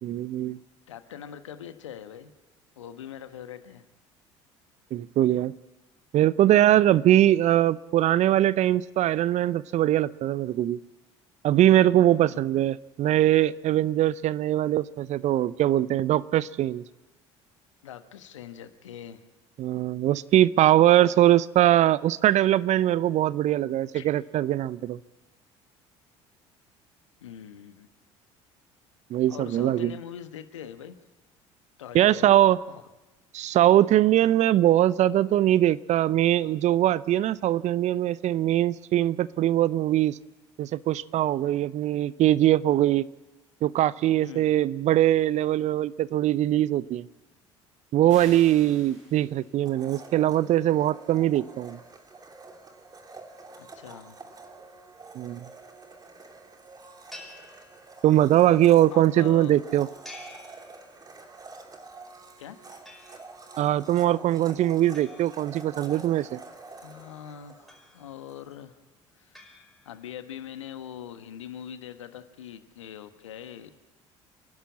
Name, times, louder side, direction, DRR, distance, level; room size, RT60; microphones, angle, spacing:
voice 1, 0.0-0.6 4.9-5.5 6.1-10.8 11.4-16.8 19.6-25.0 29.1-29.9 31.9-32.6 33.3-40.2 40.6-43.0 43.6-47.1 47.9-51.8 55.2-55.5 58.0-59.9 63.6-66.4, right 13 dB, 50° right, 20 dB, 0.6 m, -22 dB
voice 2, 0.9-2.3 2.8-3.8 17.8-19.2 23.9-24.1 27.2-27.9 29.3-31.0 31.8-32.4 32.7-32.8 44.2-44.5 53.6-54.2 58.5-58.6 58.9-59.5 62.4-62.6 66.8-68.8 69.1-73.7, left 9 dB, 80° left, 10 dB, 1.2 m, -42 dB
sound 1, 48.1-49.7, right 1 dB, 90° right, 6.3 m, -48 dB
Domestic sounds home sounds, 49.7-68.4, right 3 dB, 25° right, 2.8 m, -47 dB
sound 2, 57.1-58.3 60.0-61.3 62.9-63.6 64.9-66.1 67.7-68.4 69.3-70.2, left 1 dB, ahead, 5.2 m, -50 dB
28.0 x 11.5 x 8.4 m, 1.1 s
hypercardioid pair, 60°, 16 cm